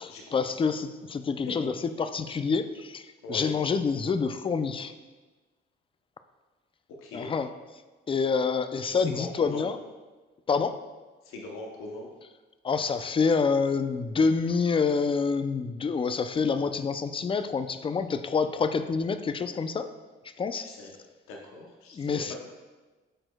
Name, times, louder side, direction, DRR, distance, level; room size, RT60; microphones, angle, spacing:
voice 1, 0.0-5.0 7.1-7.5 8.1-9.8 10.5-10.8 12.6-19.9 20.4-20.7 21.9-22.3, left 5 dB, 25° left, 10 dB, 0.4 m, -27 dB
voice 2, 7.0-7.3 9.1-9.7 11.3-12.1 20.5-20.9 21.3-22.3, left 2 dB, 85° left, 0 dB, 0.8 m, -40 dB
12.5 x 4.3 x 2.2 m, 1.3 s
cardioid pair, 90°, 21 cm